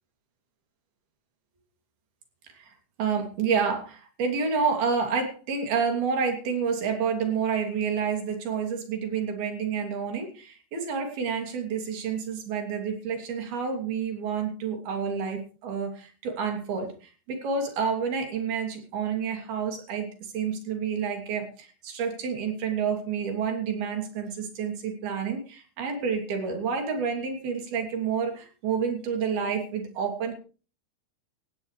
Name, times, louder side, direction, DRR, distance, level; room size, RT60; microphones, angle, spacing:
voice 1, 3.0-30.3, right 6 dB, 65° right, 4 dB, 4.6 m, -29 dB
17.5 x 16.5 x 3.3 m, 0.37 s
omnidirectional pair, 4.9 m